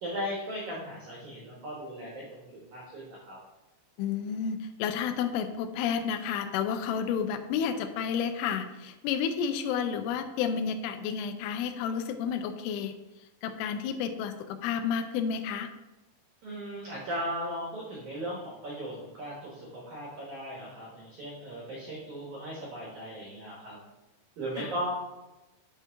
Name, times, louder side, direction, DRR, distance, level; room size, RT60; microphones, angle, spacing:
voice 1, 0.0-2.4 2.7-3.4 16.4-23.8 24.4-24.9, equal, 90° right, -4 dB, 1.6 m, -37 dB
voice 2, 4.0-13.0 13.4-15.7 24.6-24.7, left 7 dB, 85° left, 8 dB, 3.0 m, -31 dB
9.9 x 4.3 x 3.4 m, 1.0 s
omnidirectional pair, 5.6 m